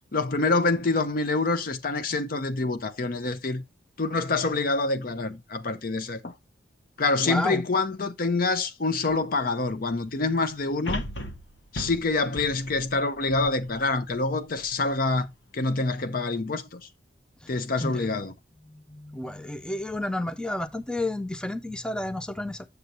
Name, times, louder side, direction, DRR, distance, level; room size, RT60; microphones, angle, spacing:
voice 1, 0.1-3.6 4.0-6.3 7.0-11.0 11.7-15.3 15.5-16.8 17.5-18.3, left 3 dB, 50° left, 0.7 m, -26 dB
voice 2, 7.2-7.6 17.4-17.5 17.8-18.1 18.7-22.7, left 1 dB, 5° left, 0.4 m, -31 dB
sound 1, 9.1-9.2 10.9-14.2 14.7-14.8, left 1 dB, 70° left, 1.0 m, -36 dB
6.8 x 6.7 x 2.8 m
head